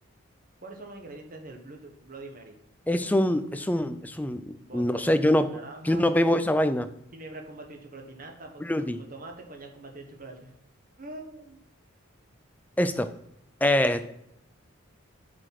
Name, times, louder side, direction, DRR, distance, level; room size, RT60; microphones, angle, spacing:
voice 1, 0.6-2.6 4.6-6.1 7.1-10.5 11.0-11.6, right 2 dB, 40° right, 3 dB, 1.4 m, -44 dB
voice 2, 2.9-4.4 4.7-5.5 5.9-6.9 8.6-9.0 12.8-13.1 13.6-14.1, left 1 dB, 10° left, 11 dB, 0.4 m, -24 dB
7.5 x 5.1 x 5.9 m, 0.78 s
head